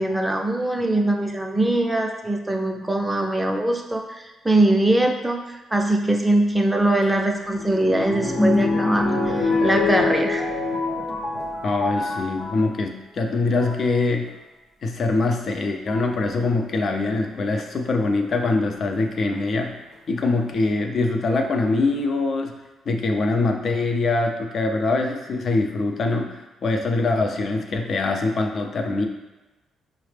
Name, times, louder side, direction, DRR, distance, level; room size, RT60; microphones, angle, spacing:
voice 1, 0.0-10.4, right 1 dB, 10° right, 2 dB, 0.5 m, -22 dB
sound 1, 7.0-12.7 13.4-13.8 15.1-15.2 15.9-16.2 18.3-18.9 19.6-19.7 19.9-20.0, left 3 dB, 80° left, 0.9 m, -25 dB
voice 2, 11.6-14.3 14.8-19.8 20.1-22.6 22.9-29.1, left 3 dB, 50° left, 4 dB, 0.4 m, -23 dB
4.8 x 2.0 x 3.3 m, 1.1 s
cardioid pair, 90°, 0 cm